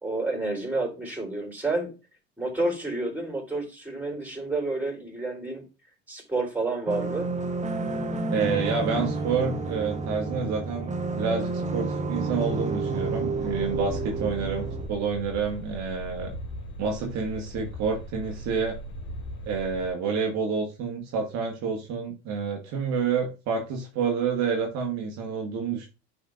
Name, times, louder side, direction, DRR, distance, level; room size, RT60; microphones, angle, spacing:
voice 1, 0.0-1.9 2.4-5.6 6.1-7.3, right 2 dB, 5° right, 0 dB, 3.6 m, -29 dB
sound 1, 6.9-14.9, right 3 dB, 20° right, 1.0 m, -30 dB
voice 2, 8.3-16.3 16.8-18.7 19.5-25.9, right 5 dB, 55° right, 0 dB, 1.5 m, -29 dB
sound 2, 13.4-19.9, right 1 dB, 55° left, 2.8 m, -39 dB
10.0 x 4.2 x 2.6 m, 0.30 s
hypercardioid pair, 75°, 32 cm